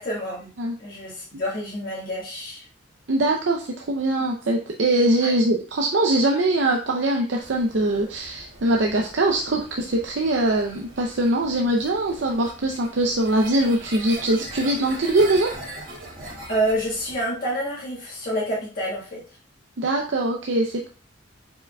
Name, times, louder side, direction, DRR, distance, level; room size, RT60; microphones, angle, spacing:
voice 1, 0.0-0.5 0.8-2.7 5.2-5.3 16.5-19.2, equal, 50° left, -7 dB, 1.5 m, -28 dB
voice 2, 3.1-15.5 19.8-20.9, right 1 dB, 70° right, 1 dB, 0.6 m, -22 dB
sound 1, 7.4-17.2, right 2 dB, 45° right, 2.0 m, -41 dB
4.9 x 4.8 x 2.2 m, 0.38 s
head